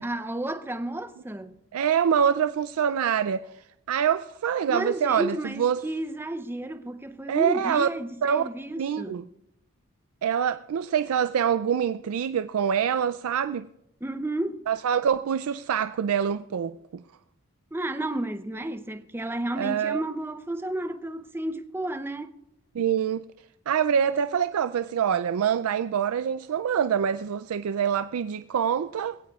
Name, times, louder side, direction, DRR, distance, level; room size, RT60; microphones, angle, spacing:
voice 1, 0.0-1.6 4.7-9.2 14.0-14.7 17.7-22.3, right 1 dB, 10° right, 0.5 m, -32 dB
voice 2, 1.7-5.8 7.3-7.9 8.2-8.5 8.8-9.2 10.2-13.7 14.7-17.0 19.6-20.0 22.7-23.2 23.7-29.2, right 8 dB, 85° right, 0.4 m, -25 dB
21.5 x 16.5 x 2.4 m
head